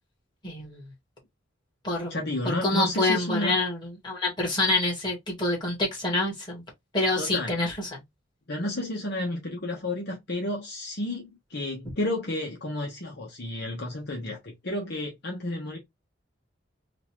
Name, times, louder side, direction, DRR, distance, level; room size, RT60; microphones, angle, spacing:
voice 1, 0.4-0.8 1.8-6.6 6.9-8.0, left 2 dB, 25° left, 1.9 m, -27 dB
voice 2, 2.1-3.6 7.2-7.6 8.5-15.8, left 1 dB, 60° left, 1.1 m, -31 dB
3.9 x 2.5 x 3.0 m
head